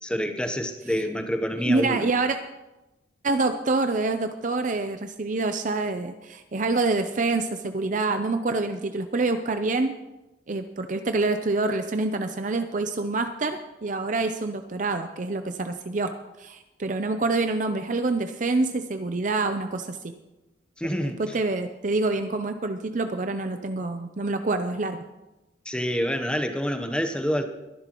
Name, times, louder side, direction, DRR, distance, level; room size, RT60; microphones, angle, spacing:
voice 1, 0.0-2.1 20.8-21.3 25.6-27.4, equal, 5° left, 7 dB, 0.9 m, -27 dB
voice 2, 1.7-2.4 3.2-9.9 10.5-16.1 16.4-20.1 20.8-25.0, right 3 dB, 45° right, 8 dB, 0.6 m, -26 dB
22.5 x 11.0 x 3.0 m, 1.0 s
head